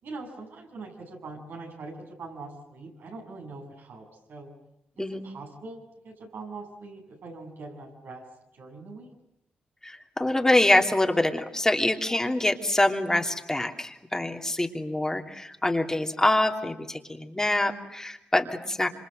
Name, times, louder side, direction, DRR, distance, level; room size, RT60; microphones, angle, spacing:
voice 1, 0.0-4.5 5.0-8.2 8.5-9.1, right 3 dB, 75° right, 2 dB, 7.6 m, -42 dB
voice 2, 9.8-18.9, left 1 dB, 15° left, 3 dB, 3.0 m, -25 dB
27.0 x 26.0 x 7.9 m, 0.84 s
cardioid pair, 60°, 4 cm